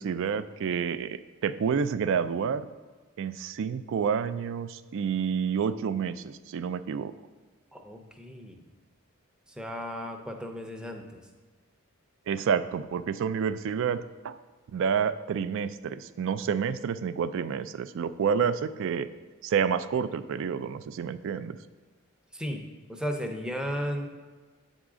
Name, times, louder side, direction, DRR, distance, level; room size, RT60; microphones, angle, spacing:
voice 1, 0.0-2.7 3.2-7.1 12.3-14.4 14.7-19.1 19.4-21.6, right 7 dB, 60° right, 14 dB, 0.3 m, -29 dB
voice 2, 7.7-8.6 9.6-11.2 22.3-22.6 22.9-24.1, equal, 5° right, 3 dB, 0.6 m, -34 dB
8.2 x 3.6 x 4.9 m, 1.4 s
head